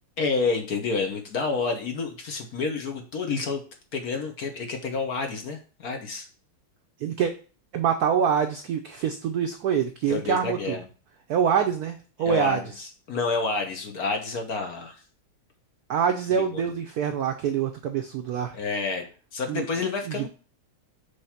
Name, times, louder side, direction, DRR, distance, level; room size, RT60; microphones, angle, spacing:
voice 1, 0.2-3.6 3.9-6.3 10.1-10.8 12.2-12.6 13.1-15.0 16.4-16.6 18.5-20.3, left 4 dB, 50° left, 4 dB, 1.3 m, -29 dB
voice 2, 7.0-7.3 7.7-10.8 11.3-12.6 15.9-18.6 19.5-19.7 20.1-20.3, right 7 dB, 85° right, 6 dB, 0.8 m, -25 dB
6.7 x 3.4 x 5.7 m, 0.36 s
omnidirectional pair, 2.4 m